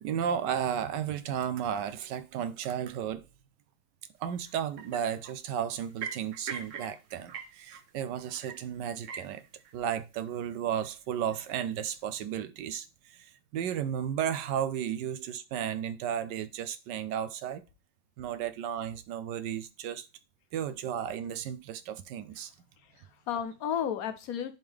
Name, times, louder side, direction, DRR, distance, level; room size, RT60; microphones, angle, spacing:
voice 1, 0.0-3.2 4.2-9.4 9.7-17.6 18.2-20.1 20.5-22.5, right 9 dB, 75° right, 1.1 m, -34 dB
sound 1, 4.5-4.6 4.8-5.3 5.8-7.9 8.2-8.6 8.9-9.8 10.1-10.3 10.6-10.9 11.2-11.8, right 6 dB, 55° right, 0.9 m, -41 dB
voice 2, 22.4-24.6, left 8 dB, 65° left, 0.9 m, -34 dB
10.5 x 3.6 x 3.3 m
omnidirectional pair, 2.0 m